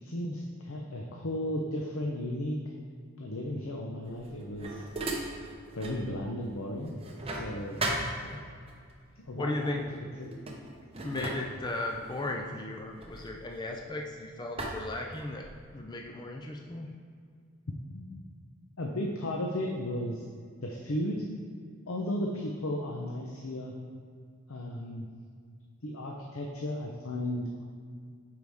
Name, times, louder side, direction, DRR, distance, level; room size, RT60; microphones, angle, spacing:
voice 1, 0.0-2.6 3.2-4.8 5.7-6.9 7.3-7.8 9.2-9.7 11.1-11.3 17.9-18.2 18.8-20.2 20.6-21.2 21.9-23.7 24.5-25.1 25.8-27.6, left 1 dB, 75° left, 0 dB, 0.7 m, -34 dB
sound 1, 4.0-6.1 6.4-8.7 9.6-9.9 10.2-14.1 14.6-15.7, right 2 dB, 25° right, 0.8 m, -38 dB
voice 2, 7.9-8.4 9.3-9.8 11.0-15.5 15.7-16.9, left 2 dB, 20° left, 2 dB, 0.4 m, -36 dB
9.1 x 4.8 x 3.5 m, 2.1 s
head